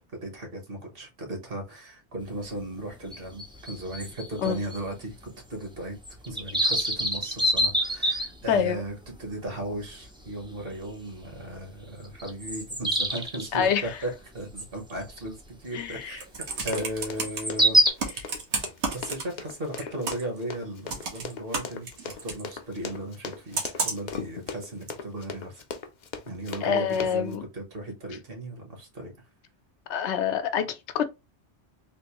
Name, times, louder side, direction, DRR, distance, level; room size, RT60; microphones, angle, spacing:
voice 1, 0.1-6.0 6.2-17.8 18.9-25.6 26.2-29.1, right 1 dB, 55° right, 1.4 m, -36 dB
sound 1, 2.2-2.3 2.6-2.7 3.1-4.8 5.1-5.2 5.6-5.7 6.1-8.7 9.3-9.4 9.9-10.0 10.4-10.6 11.5-11.6 12.0-13.4 14.6-14.8 15.2-15.3 17.2-17.9, equal, 10° right, 0.3 m, -25 dB
voice 2, 8.5-8.8 13.5-13.9 15.7-16.2 26.6-27.4 29.9-31.1, left 7 dB, 80° left, 0.9 m, -26 dB
Computer keyboard, 16.0-17.4 18.0-19.5 19.8-20.4 20.9-22.4 23.5-24.1 24.9-25.0, right 4 dB, 85° right, 1.2 m, -31 dB
Run, 16.6-27.4, left 5 dB, 55° left, 0.5 m, -39 dB
3.5 x 2.6 x 2.9 m
omnidirectional pair, 1.1 m